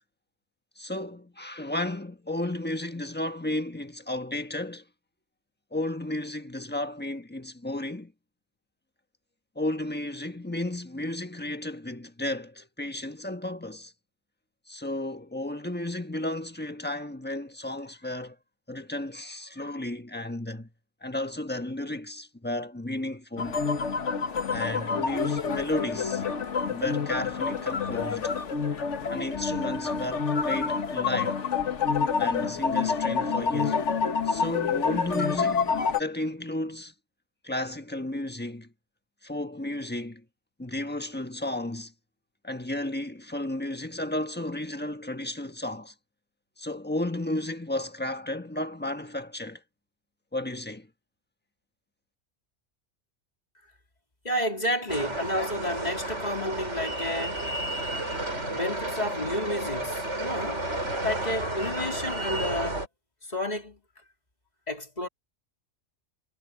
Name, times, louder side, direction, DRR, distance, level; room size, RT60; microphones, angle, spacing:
voice 1, 0.8-4.8 5.7-8.1 9.5-13.9 14.7-18.4 18.7-20.7 21.0-23.6 24.5-26.2 26.7-28.3 29.1-31.4 32.2-33.8 34.2-36.9 37.4-38.7 39.2-40.2 40.6-41.9 42.4-45.9 46.6-49.6 50.3-50.9, left 1 dB, 10° left, 1.3 m, -33 dB
sound 1, 23.4-36.0, left 5 dB, 80° left, 1.6 m, -28 dB
voice 2, 54.2-57.5 58.5-60.6 61.0-62.8 63.2-63.8 64.7-65.1, left 1 dB, 35° left, 3.3 m, -31 dB
sound 2, 54.9-62.9, right 1 dB, 80° right, 6.4 m, -32 dB
omnidirectional pair, 1.2 m